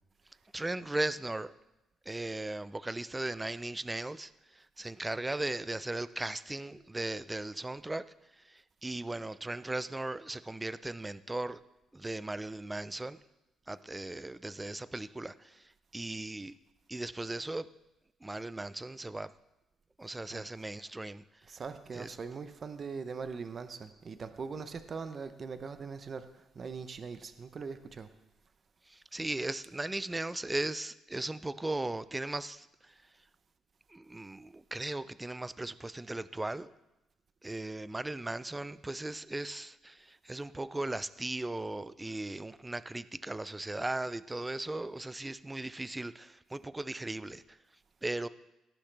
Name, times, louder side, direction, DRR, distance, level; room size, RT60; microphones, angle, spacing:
voice 1, 0.5-1.5 2.1-8.1 8.3-11.6 11.9-13.2 13.7-16.5 16.9-17.7 18.2-19.3 20.0-21.5 21.9-22.1 28.9-33.0 33.9-36.7 37.4-47.6 48.0-48.3, right 2 dB, 10° right, 0.4 m, -37 dB
voice 2, 21.5-28.1, right 5 dB, 35° right, 0.7 m, -41 dB
17.5 x 10.0 x 3.4 m
cardioid pair, 130°, 0 cm